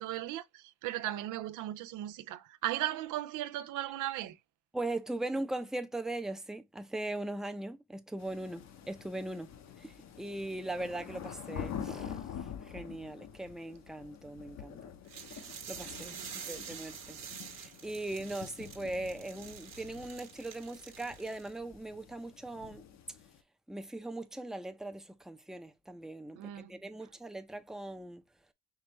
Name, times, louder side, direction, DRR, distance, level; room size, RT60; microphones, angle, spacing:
voice 1, 0.0-4.4 16.2-16.5 26.4-26.7, right 14 dB, 85° right, 0.5 m, -37 dB
voice 2, 4.7-12.3 12.7-14.9 15.7-17.2 17.5-22.8 23.7-28.2, right 2 dB, ahead, 0.5 m, -40 dB
sound 1, 8.2-23.4, left 8 dB, 60° left, 0.8 m, -47 dB
sound 2, 15.1-21.6, right 7 dB, 60° right, 1.2 m, -47 dB
4.7 x 3.1 x 3.0 m
cardioid pair, 90°, 30 cm